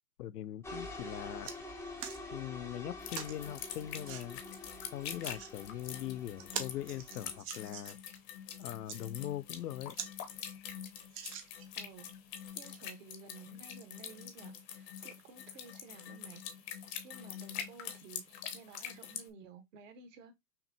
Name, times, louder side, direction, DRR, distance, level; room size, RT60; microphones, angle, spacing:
voice 1, 0.2-1.5 2.3-4.4 4.9-8.0 8.6-10.0, left 12 dB, 85° left, 0.5 m, -41 dB
sound 1, 0.6-7.4, left 2 dB, 5° left, 0.7 m, -47 dB
sound 2, 0.8-0.9 1.2-1.6 2.0-2.2 3.1-3.4 4.0-4.2 5.0-5.5 6.0-6.1 6.4-8.1 8.7-9.0 9.5-9.6 9.9-10.1 10.5-10.6 11.1-11.8 12.5-12.6, right 8 dB, 25° right, 0.3 m, -43 dB
sound 3, 3.0-19.3, left 9 dB, 40° left, 0.8 m, -45 dB
voice 2, 11.7-12.1 12.5-20.3, right 5 dB, 55° right, 1.1 m, -54 dB
5.7 x 2.1 x 2.7 m
hypercardioid pair, 120°, 46 cm